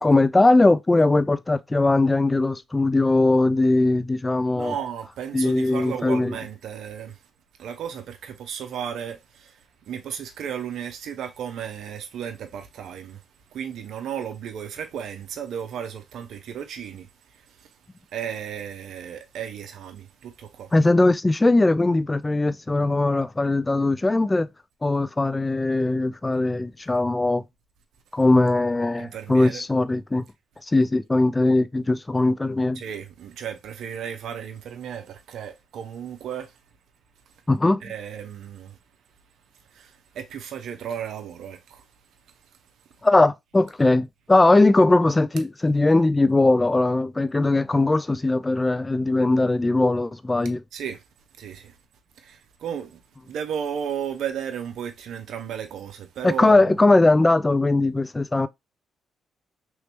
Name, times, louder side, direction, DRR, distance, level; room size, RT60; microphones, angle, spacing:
voice 1, 0.0-4.7 5.3-6.4 20.7-24.5 24.8-27.4 28.1-30.2 30.7-32.8 37.5-37.8 43.0-50.6 56.2-58.5, left 2 dB, 20° left, 0.4 m, -20 dB
voice 2, 4.5-7.2 7.6-9.6 9.9-13.2 13.5-17.1 17.5-17.7 18.1-20.7 29.0-29.6 32.8-36.5 37.8-38.8 39.7-41.8 50.7-51.0 51.4-51.7 52.2-53.0 53.3-56.8, right 8 dB, 70° right, 0.6 m, -34 dB
3.1 x 2.8 x 3.3 m
hypercardioid pair, 50°, 0 cm